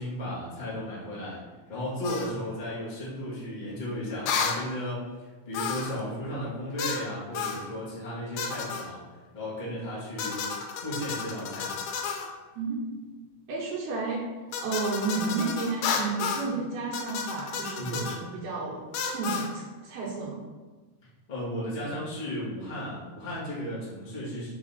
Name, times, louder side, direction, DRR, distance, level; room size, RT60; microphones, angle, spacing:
voice 1, 0.0-1.4 1.7-5.0 5.4-9.0 9.3-10.4 10.7-11.7 17.8-18.1 21.3-24.5, equal, 35° left, -9 dB, 0.6 m, -34 dB
sound 1, 2.0-2.3 4.3-4.6 5.5-6.0 6.8-7.1 7.4-7.6 8.4-8.9 10.2-12.3 14.5-16.5 16.9-18.2 18.9-19.5, left 6 dB, 85° left, 2.6 m, -32 dB
voice 2, 12.5-12.9 13.5-14.2 14.6-18.8 19.1-20.4, right 4 dB, 80° right, -5 dB, 3.0 m, -32 dB
5.9 x 4.1 x 4.1 m, 1.3 s
omnidirectional pair, 4.4 m